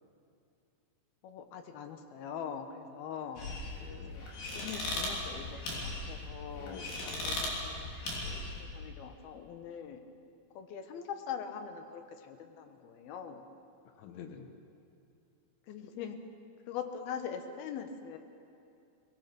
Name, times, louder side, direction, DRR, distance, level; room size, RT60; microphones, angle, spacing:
voice 1, 1.2-3.5 4.1-4.3 4.5-10.0 10.5-13.5 15.7-16.2 16.7-18.2, left 7 dB, 70° left, 6 dB, 2.6 m, -43 dB
voice 2, 3.1-4.2 6.5-7.3 14.0-14.5, left 7 dB, 85° left, 5 dB, 3.8 m, -49 dB
sound 1, 3.4-8.6, left 2 dB, 50° left, 4.8 m, -38 dB
23.0 x 20.0 x 6.0 m, 2.6 s
omnidirectional pair, 5.4 m